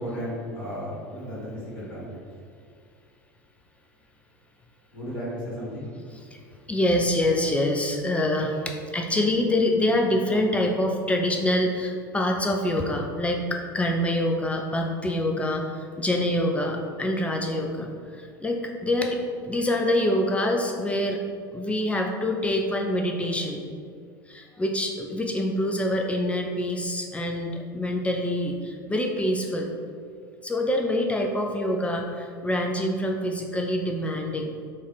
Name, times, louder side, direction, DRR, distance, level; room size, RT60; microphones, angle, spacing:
voice 1, 0.0-1.5 1.7-2.1 4.9-5.9, equal, 75° left, -7 dB, 1.4 m, -34 dB
voice 2, 6.7-21.3 21.5-23.6 24.3-29.7 30.4-34.5, left 1 dB, 10° left, 2 dB, 0.3 m, -26 dB
3.9 x 2.3 x 3.5 m, 2.2 s
figure-of-eight pair, 75°, 12 cm